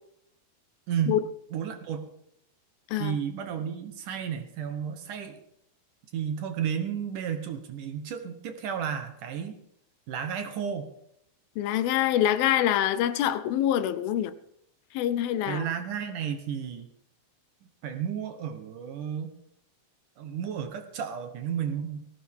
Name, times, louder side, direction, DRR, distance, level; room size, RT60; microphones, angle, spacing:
voice 1, 0.9-1.2 1.5-2.1 3.0-5.4 6.1-9.6 10.1-10.9 15.5-16.9 17.8-19.3 20.2-22.1, right 8 dB, 65° right, 2.4 m, -32 dB
voice 2, 11.6-14.3 14.9-15.7, left 11 dB, 80° left, 2.4 m, -25 dB
19.0 x 16.5 x 3.6 m
omnidirectional pair, 4.5 m